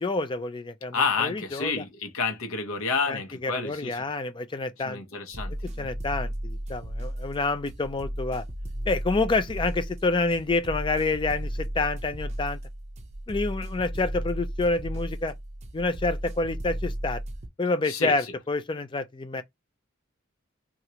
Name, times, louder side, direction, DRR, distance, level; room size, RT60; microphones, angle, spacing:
voice 1, 0.0-1.8 3.1-5.0 5.8-8.4 8.9-12.6 13.3-15.3 15.7-17.2 17.6-19.4, left 3 dB, 25° left, 0.4 m, -28 dB
voice 2, 0.9-4.0 4.8-5.9 17.9-18.1, left 5 dB, 85° left, 0.9 m, -29 dB
sound 1, 5.3-17.5, right 1 dB, 35° right, 0.5 m, -34 dB
3.1 x 2.4 x 2.8 m
head